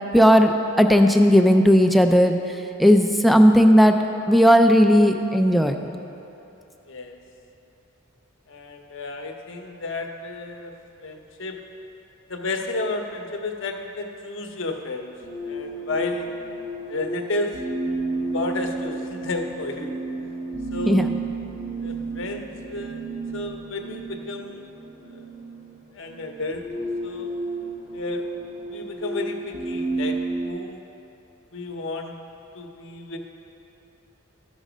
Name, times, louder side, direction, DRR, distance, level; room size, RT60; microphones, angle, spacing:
voice 1, 0.1-2.4 2.8-4.0 4.3-5.7 20.9-21.1, equal, ahead, 5 dB, 0.3 m, -15 dB
voice 2, 6.9-7.2 8.5-10.7 11.0-11.6 12.3-15.1 15.4-16.3 16.9-17.9 18.3-20.0 20.7-21.1 21.8-23.1 23.3-24.6 25.0-25.3 25.9-26.7 27.0-27.3 27.9-28.3 28.7-30.9 31.5-32.1 32.5-33.2, left 2 dB, 60° left, 3 dB, 0.8 m, -32 dB
sound 1, 15.2-30.5, right 2 dB, 40° right, 1.0 m, -32 dB
13.5 x 5.3 x 5.0 m, 3.0 s
head